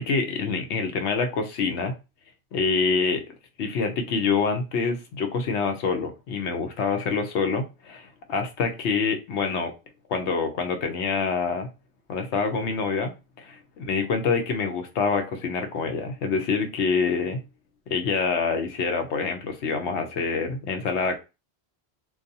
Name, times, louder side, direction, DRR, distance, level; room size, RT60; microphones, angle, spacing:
voice 1, 0.0-1.9 2.5-3.2 3.6-9.7 10.1-11.7 12.1-13.1 13.4-13.6 13.8-17.4 17.9-21.2, left 5 dB, 90° left, 0.9 m, -26 dB
2.4 x 2.3 x 2.6 m
omnidirectional pair, 1.1 m